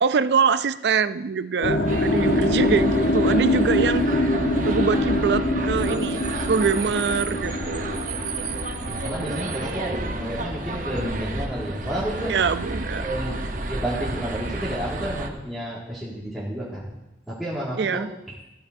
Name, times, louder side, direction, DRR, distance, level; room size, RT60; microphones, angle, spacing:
voice 1, 0.0-4.1 4.6-8.1 12.3-13.0 17.8-18.1, right 5 dB, 65° right, 14 dB, 0.4 m, -24 dB
sound 1, 1.6-11.7 12.0-13.7, left 1 dB, 70° left, 1.2 m, -25 dB
sound 2, 1.9-15.3, right 2 dB, 45° right, 1.0 m, -31 dB
voice 2, 8.8-12.3 12.9-17.0 17.3-18.0, right 1 dB, ahead, -10 dB, 2.0 m, -31 dB
14.0 x 13.5 x 2.7 m, 0.97 s
head